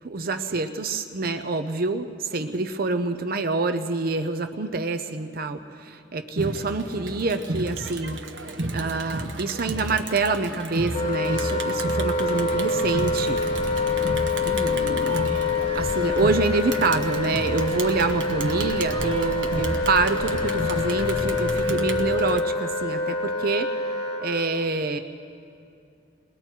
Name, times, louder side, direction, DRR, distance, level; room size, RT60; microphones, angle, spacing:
voice 1, 0.0-8.2 8.7-13.4 14.4-15.4 15.7-23.7 24.2-25.0, right 3 dB, 50° right, 9 dB, 0.7 m, -26 dB
Crowd, 6.4-22.4, right 2 dB, 70° right, 1.1 m, -32 dB
Wind instrument woodwind instrument, 10.9-24.3, left 3 dB, 45° left, 5.4 m, -26 dB
sound 1, 12.2-21.6, equal, 30° left, 1.5 m, -36 dB
28.0 x 21.0 x 4.6 m, 2.5 s
head